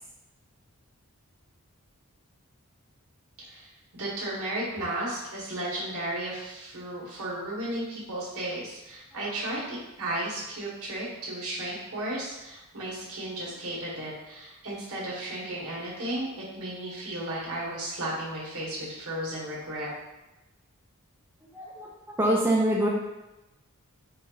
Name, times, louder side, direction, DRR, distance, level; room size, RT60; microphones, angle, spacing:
voice 1, 3.5-19.9, right 1 dB, 75° right, -6 dB, 1.4 m, -34 dB
voice 2, 21.5-22.9, right 1 dB, 10° right, -4 dB, 0.4 m, -25 dB
4.5 x 2.5 x 2.9 m, 1.0 s
head